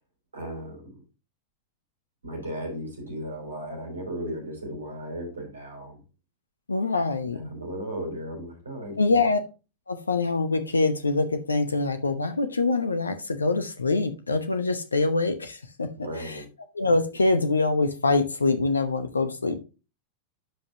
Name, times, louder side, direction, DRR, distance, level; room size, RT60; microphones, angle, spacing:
voice 1, 0.3-1.0 2.2-6.0 7.3-9.3 15.9-16.5, equal, 75° right, 2 dB, 5.3 m, -36 dB
voice 2, 6.7-7.5 9.0-9.4 9.9-15.9 16.2-16.4 16.7-19.6, left 3 dB, 75° left, 10 dB, 0.9 m, -24 dB
11.5 x 5.5 x 2.9 m, 0.30 s
figure-of-eight pair, 90°, 0 cm